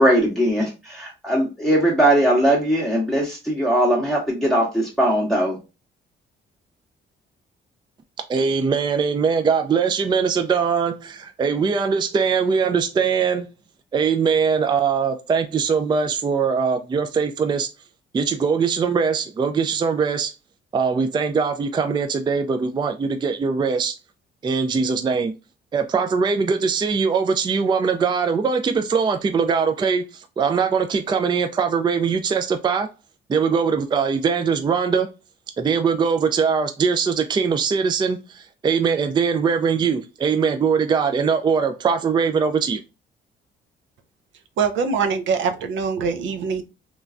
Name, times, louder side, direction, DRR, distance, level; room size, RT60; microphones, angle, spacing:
voice 1, 0.0-5.6, right 1 dB, ahead, 0.8 m, -20 dB
voice 2, 8.3-13.5 13.9-17.7 18.1-20.3 20.7-23.9 24.4-25.3 25.7-32.9 33.3-35.1 35.6-42.8, right 5 dB, 25° right, 0.3 m, -21 dB
voice 3, 44.6-46.6, right 5 dB, 70° right, 0.6 m, -23 dB
3.1 x 2.2 x 2.4 m
cardioid pair, 90°, 20 cm